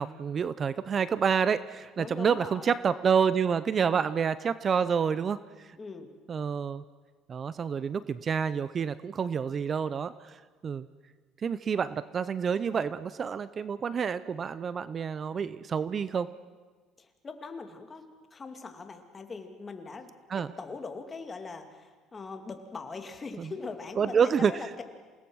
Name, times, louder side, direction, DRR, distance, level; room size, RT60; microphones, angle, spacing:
voice 1, 0.0-5.8 6.3-6.8 7.3-10.9 11.4-16.3 20.3-20.5 23.4-23.5 24.0-24.5, right 6 dB, 35° right, 16 dB, 0.6 m, -28 dB
voice 2, 2.0-2.7 3.8-4.1 5.8-6.1 17.0-20.1 20.6-24.8, left 4 dB, 25° left, 6 dB, 2.4 m, -41 dB
28.0 x 18.0 x 6.3 m, 1.4 s
cardioid pair, 120°, 0 cm